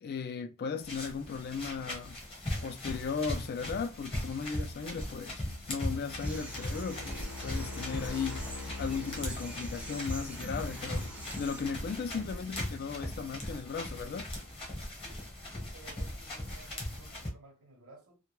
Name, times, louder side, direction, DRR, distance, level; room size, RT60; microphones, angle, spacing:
voice 1, 0.0-2.2 2.6-5.4 5.7-11.1 11.4-14.3, left 5 dB, 45° left, 0.3 m, -36 dB
sound 1, 0.8-17.3, left 1 dB, 25° left, 0.9 m, -39 dB
sound 2, 5.4-14.2, left 3 dB, 85° left, 0.6 m, -46 dB
sound 3, 6.2-11.6, right 2 dB, 5° right, 0.5 m, -46 dB
voice 2, 15.0-18.2, right 3 dB, 70° right, 0.8 m, -56 dB
2.2 x 2.1 x 3.0 m
head